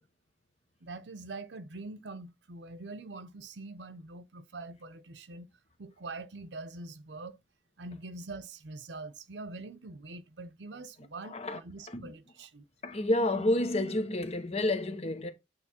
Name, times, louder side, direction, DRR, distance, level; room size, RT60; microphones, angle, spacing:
voice 1, 0.8-5.5 5.8-7.4 7.8-12.6, right 3 dB, 80° right, 0.7 m, -44 dB
voice 2, 12.8-15.3, left 1 dB, 35° left, 1.0 m, -29 dB
8.5 x 3.1 x 4.3 m
head